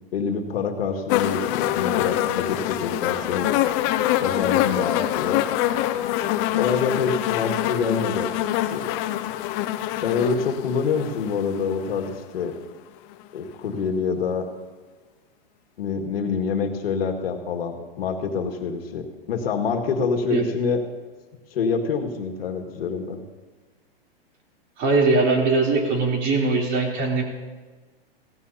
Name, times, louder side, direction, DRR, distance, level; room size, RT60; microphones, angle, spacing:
voice 1, 0.1-3.6 4.2-5.4 6.6-8.3 8.6-8.9 10.0-12.5 13.3-14.5 15.8-20.8 21.5-23.2, left 5 dB, 70° left, 4 dB, 1.9 m, -26 dB
sound 1, 1.1-12.2 13.1-13.2, left 13 dB, 35° left, 0.6 m, -25 dB
voice 2, 24.8-27.2, right 3 dB, 35° right, 0 dB, 3.4 m, -21 dB
17.0 x 15.5 x 2.8 m, 1.3 s
hypercardioid pair, 120°, 30 cm